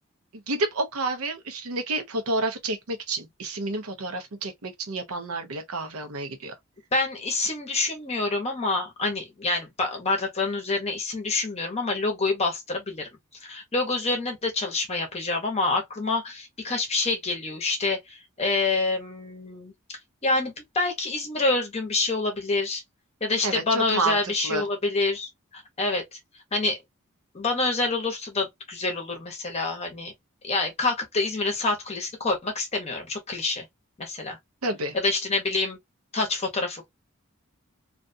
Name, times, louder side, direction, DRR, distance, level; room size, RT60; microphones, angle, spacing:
voice 1, 0.5-6.5 23.4-24.2 24.4-24.6 34.6-34.9, right 2 dB, 85° right, 0.7 m, -29 dB
voice 2, 6.9-13.1 13.4-19.7 20.2-22.8 23.2-26.2 26.5-26.8 27.3-30.1 30.4-33.6 34.0-34.4 34.9-35.8 36.1-36.9, left 3 dB, 30° left, 0.7 m, -27 dB
2.5 x 2.2 x 2.5 m
head